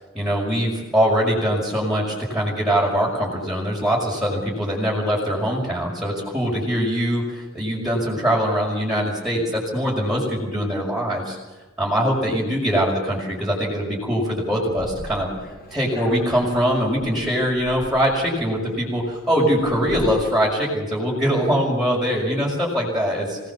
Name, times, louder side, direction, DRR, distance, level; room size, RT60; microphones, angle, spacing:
voice 1, 0.1-11.4 11.8-15.3 15.7-23.4, equal, ahead, -6 dB, 5.8 m, -22 dB
sound 1, 14.5-20.1, equal, 50° left, 7.1 m, -41 dB
26.0 x 18.5 x 7.2 m, 1.2 s
head